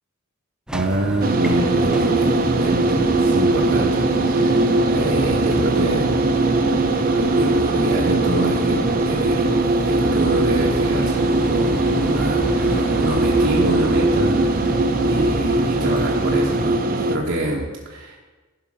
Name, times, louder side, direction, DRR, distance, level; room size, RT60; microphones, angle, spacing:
sound 1, 0.7-16.6, equal, 5° right, 0.4 m, -31 dB
voice 1, 0.7-6.3 6.7-9.5 9.8-14.4 14.7-18.2, right 1 dB, 60° right, -2 dB, 1.0 m, -26 dB
sound 2, 1.2-17.2, right 2 dB, 45° right, 0.7 m, -20 dB
11.5 x 5.1 x 6.0 m, 1.3 s
head